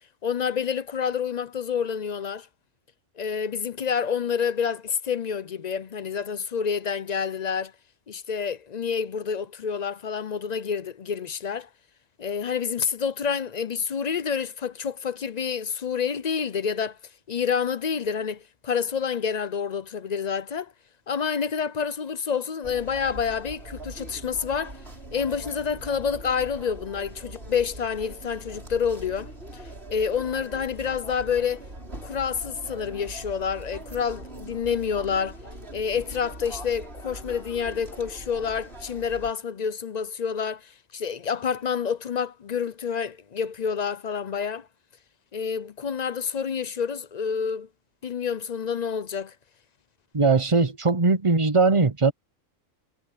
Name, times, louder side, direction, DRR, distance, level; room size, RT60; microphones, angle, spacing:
voice 1, 0.2-2.5 3.2-7.7 8.1-11.7 12.2-17.0 17.3-20.7 21.1-24.8 25.1-29.6 29.9-31.6 32.0-35.4 35.7-44.7 45.3-47.7 48.0-49.3, left 6 dB, 50° left, 0.5 m, -28 dB
sound 1, 22.6-39.3, right 1 dB, 45° right, 6.7 m, -42 dB
voice 2, 50.1-52.1, right 4 dB, 25° right, 0.8 m, -20 dB
omnidirectional pair, 1.4 m